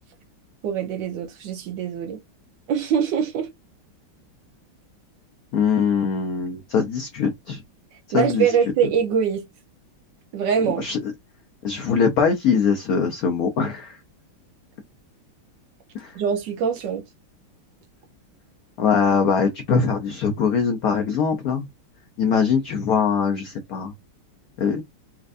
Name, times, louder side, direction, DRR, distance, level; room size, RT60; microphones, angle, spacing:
voice 1, 0.6-2.2 2.7-3.5 8.1-9.5 10.3-10.8 16.1-17.0, right 7 dB, 65° right, 1.2 m, -23 dB
voice 2, 5.5-7.6 8.1-8.5 10.8-11.0 11.6-14.0 15.9-16.1 18.8-21.6 22.2-23.9 24.6-24.8, left 6 dB, 85° left, 0.8 m, -22 dB
4.3 x 2.5 x 2.4 m
omnidirectional pair, 2.3 m